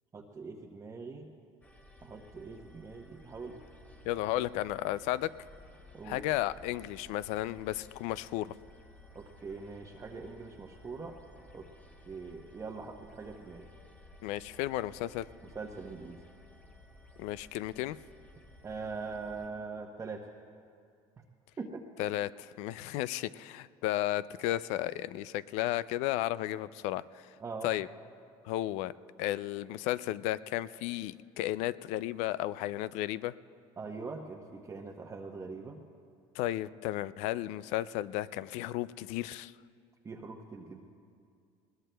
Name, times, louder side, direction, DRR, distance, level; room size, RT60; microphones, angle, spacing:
voice 1, 0.1-1.3 2.0-3.6 5.9-6.2 9.1-11.2 11.5-11.7 12.1-13.7 15.5-16.2 18.6-20.2 21.6-21.8 27.4-27.7 33.8-35.8 40.0-40.9, right 4 dB, 25° right, -1 dB, 0.9 m, -42 dB
sound 1, 1.6-19.5, left 1 dB, 10° left, 1.0 m, -56 dB
voice 2, 4.0-5.3 6.0-8.5 14.2-15.3 17.2-18.0 22.0-27.3 27.6-27.9 28.4-28.9 29.2-33.3 36.3-39.5, left 15 dB, 75° left, 17 dB, 0.4 m, -33 dB
21.0 x 19.5 x 2.3 m, 2.3 s
supercardioid pair, 105°, 12 cm